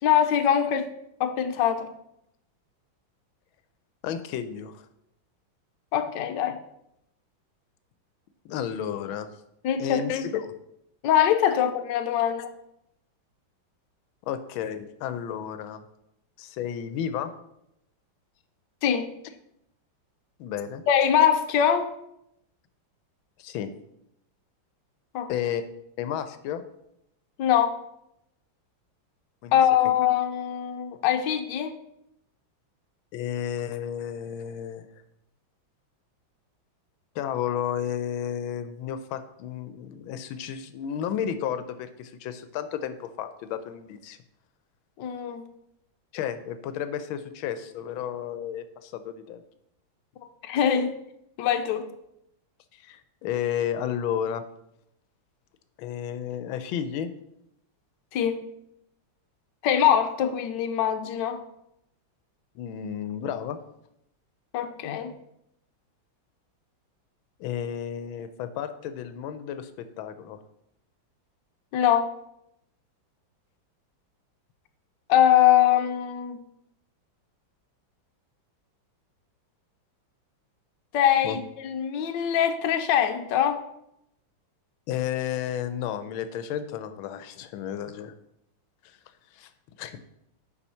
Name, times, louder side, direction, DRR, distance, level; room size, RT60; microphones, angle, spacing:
voice 1, 0.0-0.9 1.2-1.9 5.9-6.6 9.6-10.0 11.0-12.4 18.8-19.1 20.9-21.9 25.1-25.3 27.4-27.7 29.5-31.7 45.0-45.4 50.4-51.0 51.4-51.9 58.1-58.4 59.6-61.4 64.5-65.1 71.7-72.1 75.1-76.4 80.9-83.6, left 9 dB, 70° left, 6 dB, 1.3 m, -23 dB
voice 2, 4.0-4.9 8.4-9.3 9.8-10.5 14.3-15.8 16.4-17.3 20.4-20.8 23.4-23.7 25.3-25.6 26.0-26.6 29.4-29.6 29.8-29.9 33.1-34.8 37.1-44.2 46.1-49.4 52.7-54.4 55.8-57.1 62.5-63.6 67.4-70.4 81.2-81.4 84.9-88.1 88.8-89.0 89.3-89.5 89.8-90.0, left 9 dB, 90° left, 11 dB, 1.4 m, -32 dB
7.1 x 4.8 x 5.6 m, 0.80 s
omnidirectional pair, 2.2 m